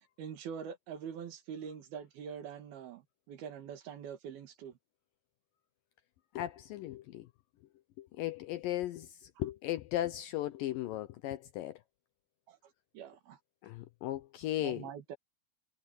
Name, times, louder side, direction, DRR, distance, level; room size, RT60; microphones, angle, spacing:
voice 1, 0.2-4.7 12.5-12.6 12.9-13.4 14.6-15.2, right 7 dB, 70° right, 3.8 m, -44 dB
voice 2, 6.4-7.3 8.0-11.8 13.6-14.9, left 14 dB, 80° left, 2.1 m, -37 dB
omnidirectional pair, 4.6 m